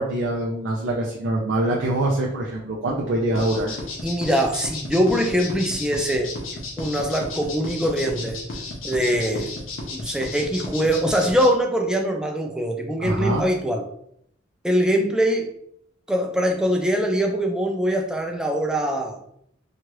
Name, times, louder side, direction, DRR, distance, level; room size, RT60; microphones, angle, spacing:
voice 1, 0.0-3.8 13.0-13.4, right 1 dB, 65° right, -2 dB, 0.5 m, -24 dB
sound 1, 3.3-11.5, left 2 dB, 85° left, 0.7 m, -33 dB
voice 2, 4.0-6.4 6.8-8.4 8.8-9.5 9.9-13.8 14.6-15.5 16.1-19.2, equal, 5° right, 2 dB, 0.3 m, -23 dB
2.9 x 2.4 x 3.0 m, 0.71 s
head